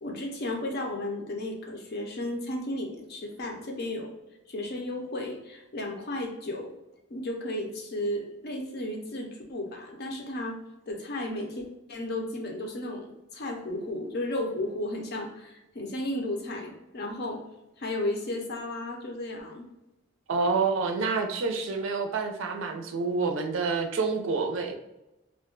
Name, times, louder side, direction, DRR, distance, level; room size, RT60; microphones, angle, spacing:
voice 1, 0.0-4.1 4.5-6.7 7.1-10.6 10.9-17.4 17.8-19.6, left 1 dB, 50° left, 2 dB, 0.6 m, -34 dB
voice 2, 20.3-24.7, right 4 dB, 70° right, 5 dB, 0.4 m, -28 dB
2.4 x 2.2 x 3.7 m, 0.95 s
head